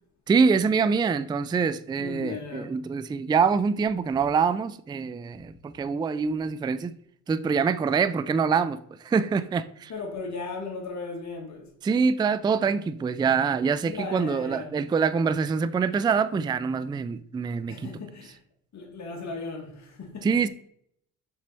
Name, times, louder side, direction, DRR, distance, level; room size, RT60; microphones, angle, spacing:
voice 1, 0.3-6.9 7.3-8.8 9.0-9.9 11.8-17.8 20.2-20.5, right 5 dB, 15° right, 0.3 m, -25 dB
voice 2, 2.0-2.8 9.9-11.7 13.8-14.8 17.7-18.4 18.7-20.4, left 3 dB, 45° left, 1.8 m, -36 dB
6.2 x 4.3 x 4.1 m
supercardioid pair, 65°, 37 cm